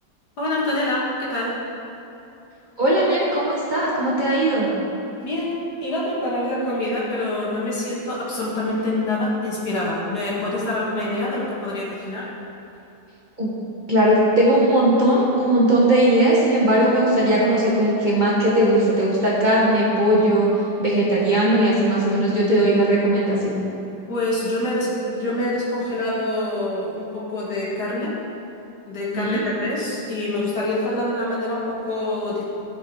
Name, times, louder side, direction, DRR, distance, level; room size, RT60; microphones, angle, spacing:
voice 1, 0.4-1.6 5.2-12.3 24.1-28.1 28.9-32.4, left 1 dB, 65° left, -6 dB, 2.4 m, -25 dB
voice 2, 2.8-4.7 13.4-13.5 13.9-20.5 20.8-23.6 29.1-29.4, right 1 dB, 25° right, -7 dB, 1.7 m, -18 dB
13.5 x 5.8 x 4.9 m, 2.8 s
omnidirectional pair, 1.9 m